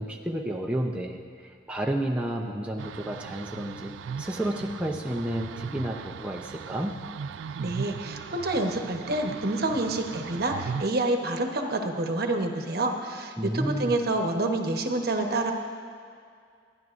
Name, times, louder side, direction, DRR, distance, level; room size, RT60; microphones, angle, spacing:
voice 1, 0.0-3.9 4.2-7.0 13.4-14.0, right 1 dB, 5° right, 0 dB, 0.6 m, -31 dB
sound 1, 2.8-10.9, right 6 dB, 85° right, 0.3 m, -38 dB
voice 2, 7.6-15.5, right 2 dB, 55° right, 3 dB, 1.1 m, -28 dB
26.0 x 10.5 x 2.5 m, 2.2 s
head